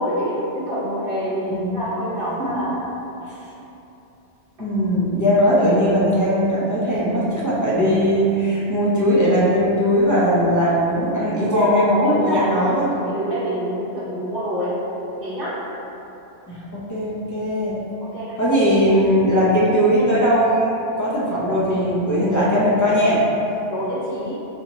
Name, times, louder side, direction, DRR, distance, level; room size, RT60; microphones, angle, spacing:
voice 1, 0.0-2.7 11.5-14.7 15.2-15.5 18.1-18.6 23.7-24.4, equal, 55° right, -10 dB, 1.0 m, -26 dB
voice 2, 1.4-1.8 2.4-2.7 4.6-12.9 16.5-17.8 18.4-23.2, equal, 25° left, -8 dB, 0.5 m, -19 dB
4.1 x 2.8 x 2.9 m, 2.9 s
omnidirectional pair, 1.2 m